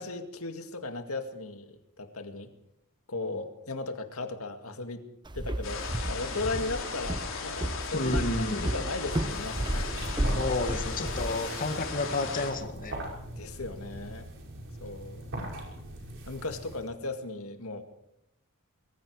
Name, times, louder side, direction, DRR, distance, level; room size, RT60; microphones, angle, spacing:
voice 1, 0.0-2.5 3.1-5.1 5.3-10.0 13.3-14.3 14.8-15.3 16.3-17.9, left 3 dB, 80° left, 7 dB, 2.1 m, -37 dB
Walk footsteps, 5.3-11.4, right 1 dB, 20° right, 0.8 m, -33 dB
sound 1, 5.6-12.5, left 5 dB, 60° left, 4.6 m, -37 dB
voice 2, 7.9-8.7 10.3-12.9, left 2 dB, 40° left, 6 dB, 1.8 m, -31 dB
sound 2, 9.2-16.9, right 1 dB, 60° right, 5.7 m, -40 dB
24.5 x 21.5 x 4.9 m, 0.78 s
head